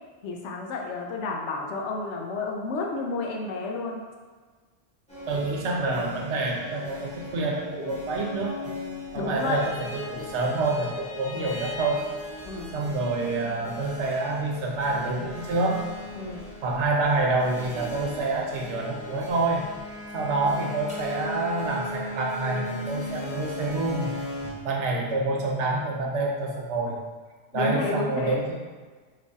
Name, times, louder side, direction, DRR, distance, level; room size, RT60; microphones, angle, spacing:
voice 1, 0.2-4.0 9.1-9.7 11.3-11.6 12.4-12.8 16.2-16.5 27.5-28.5, left 3 dB, 85° left, 1 dB, 0.9 m, -31 dB
sound 1, 5.1-24.5, left 1 dB, 5° left, 0.9 m, -38 dB
voice 2, 5.3-8.7 9.1-12.1 12.7-15.8 16.6-19.7 20.1-24.1 24.6-27.0 27.5-28.6, right 2 dB, 80° right, -1 dB, 0.9 m, -27 dB
3.1 x 2.4 x 3.9 m, 1.5 s
omnidirectional pair, 1.2 m